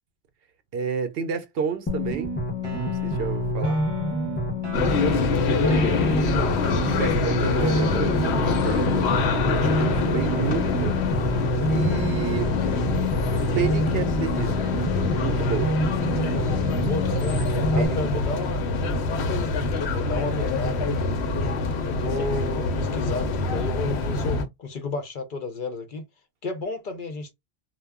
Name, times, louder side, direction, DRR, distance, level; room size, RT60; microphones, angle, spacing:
voice 1, 0.7-2.3 2.8-3.8 6.9-9.2 9.8-11.0 11.7-12.5 13.5-14.7 15.1-15.8 17.7-18.4, right 7 dB, 70° right, 0.8 m, -30 dB
sound 1, 1.9-17.9, left 1 dB, 15° left, 0.5 m, -27 dB
sound 2, 2.6-10.5, right 3 dB, 25° right, 0.8 m, -38 dB
sound 3, 4.7-24.5, left 3 dB, 90° left, 0.9 m, -25 dB
voice 2, 5.0-6.6 16.8-17.4 17.7-18.7 19.8-21.2 21.8-26.0 26.4-27.3, left 3 dB, 60° left, 0.7 m, -32 dB
2.2 x 2.0 x 3.3 m
omnidirectional pair, 1.1 m